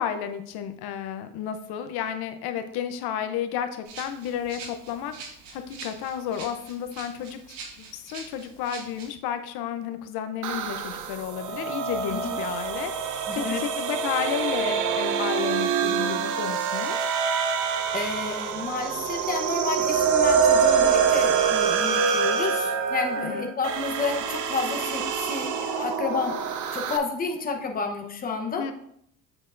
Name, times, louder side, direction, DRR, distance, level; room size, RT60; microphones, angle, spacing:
voice 1, 0.0-5.1 5.5-7.4 7.8-13.3 13.6-17.0 23.2-23.5 28.6-28.7, left 9 dB, 70° left, 8 dB, 0.7 m, -32 dB
Rattle (instrument), 3.8-9.1, right 4 dB, 85° right, 1.9 m, -43 dB
sound 1, 10.4-27.0, right 6 dB, 50° right, 0.7 m, -25 dB
voice 2, 13.3-13.6 17.9-28.7, left 5 dB, 20° left, 3 dB, 0.9 m, -31 dB
7.8 x 6.6 x 2.5 m, 0.69 s
cardioid pair, 145°, 40 cm